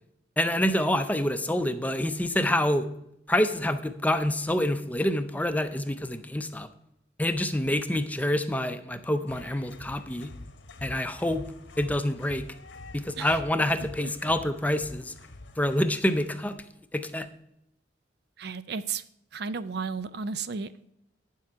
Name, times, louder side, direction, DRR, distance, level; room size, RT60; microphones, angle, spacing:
voice 1, 0.4-2.9 3.3-6.7 7.2-10.3 10.8-11.4 11.8-12.5 12.9-15.1 15.6-16.6 16.9-17.3, left 1 dB, 10° left, 9 dB, 0.5 m, -27 dB
sound 1, 9.3-16.5, left 2 dB, 85° left, 1.2 m, -47 dB
voice 2, 13.8-14.3 18.4-19.0 19.3-20.9, right 5 dB, 60° right, 14 dB, 0.4 m, -34 dB
9.7 x 7.5 x 4.6 m, 0.79 s
head